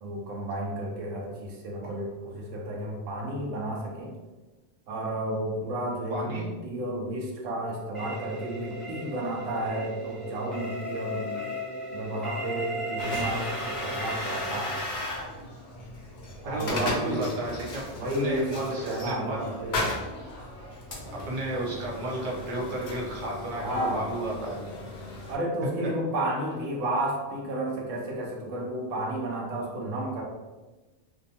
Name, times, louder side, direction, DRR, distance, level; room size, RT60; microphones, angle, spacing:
voice 1, 0.0-4.1 4.9-11.2 11.9-14.8 16.4-17.3 17.9-20.0 23.6-24.1 25.3-30.2, right 1 dB, 90° right, 0 dB, 0.9 m, -32 dB
voice 2, 6.1-6.5 11.0-11.4 16.4-17.9 18.2-19.5 21.3-24.6, right 2 dB, 50° right, -4 dB, 0.7 m, -33 dB
sound 1, 7.9-14.8, right 1 dB, ahead, 0.5 m, -36 dB
sound 2, 13.0-25.3, left 2 dB, 55° left, 0.6 m, -36 dB
2.5 x 2.2 x 2.7 m, 1.2 s
omnidirectional pair, 1.2 m